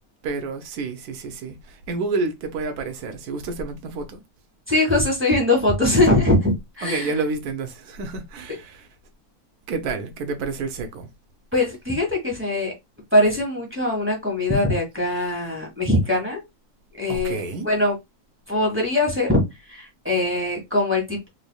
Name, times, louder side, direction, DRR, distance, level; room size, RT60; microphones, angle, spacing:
voice 1, 0.2-4.2 6.8-8.9 9.7-11.1 17.1-17.7, right 3 dB, 85° right, 1.2 m, -29 dB
voice 2, 4.7-7.1 11.5-12.7 13.1-16.4 17.0-17.9 18.5-19.4 19.7-21.3, left 1 dB, 10° right, 1.3 m, -21 dB
3.3 x 3.2 x 2.3 m
omnidirectional pair, 1.6 m